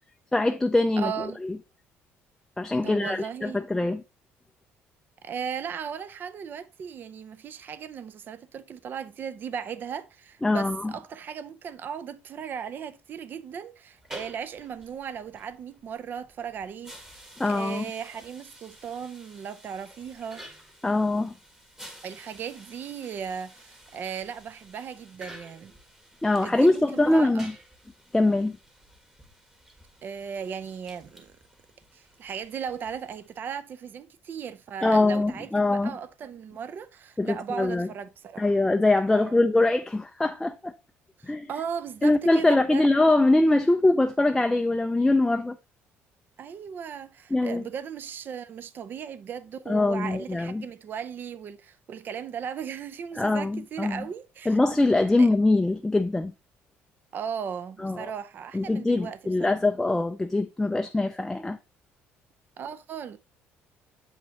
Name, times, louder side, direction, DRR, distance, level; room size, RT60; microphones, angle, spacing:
voice 1, 0.3-1.1 1.4-1.6 2.6-4.0 10.4-10.8 17.4-17.8 20.8-21.3 26.2-27.5 28.1-28.6 34.8-35.9 37.2-37.9 38.4-40.7 41.3-41.5 42.0-45.6 47.3-47.6 49.7-50.6 53.2-54.0 54.5-56.3 57.8-58.1 58.5-61.6, left 2 dB, 10° left, 0.4 m, -23 dB
voice 2, 1.0-1.4 2.8-3.6 5.2-17.2 17.5-20.5 22.0-25.7 26.4-27.5 30.0-31.3 31.9-38.6 39.1-39.4 41.2-42.8 46.4-54.6 55.2-55.3 57.1-59.6 62.6-63.2, right 7 dB, 45° right, 0.6 m, -37 dB
sound 1, 13.9-33.5, right 1 dB, 10° right, 1.3 m, -50 dB
7.2 x 5.4 x 2.9 m
cardioid pair, 115°, 5 cm